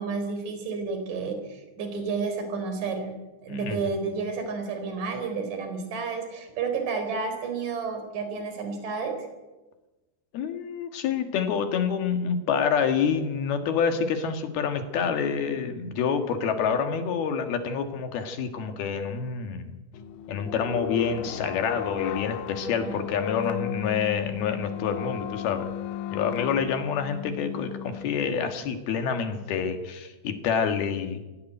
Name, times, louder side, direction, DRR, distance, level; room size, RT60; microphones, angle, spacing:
voice 1, 0.0-3.1 3.4-9.2 22.6-22.9, right 4 dB, 45° right, 6 dB, 5.1 m, -31 dB
voice 2, 10.3-19.8 20.3-25.7 26.1-31.2, left 6 dB, 60° left, 6 dB, 3.2 m, -27 dB
sound 1, 19.9-28.7, left 10 dB, 80° left, 3.4 m, -35 dB
23.5 x 16.5 x 9.3 m, 1.1 s
omnidirectional pair, 5.7 m